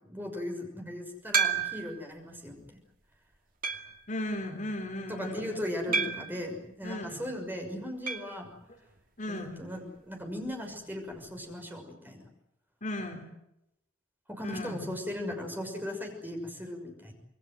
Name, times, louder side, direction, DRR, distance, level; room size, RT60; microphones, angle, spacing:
voice 1, 0.0-2.8 5.1-8.6 9.3-12.2 14.3-17.1, left 1 dB, 10° right, 3 dB, 6.2 m, -38 dB
sound 1, 1.3-2.0 2.6-2.7 3.6-4.0 5.9-6.4 8.1-8.4 8.6-8.7 9.0-9.1 11.1-11.2, right 6 dB, 45° right, 2.5 m, -30 dB
voice 2, 4.1-5.6 5.9-6.1 6.8-7.2 9.2-9.5 12.8-13.3 14.4-14.8, left 1 dB, 40° left, 4 dB, 3.6 m, -36 dB
27.5 x 21.5 x 7.8 m, 0.84 s
head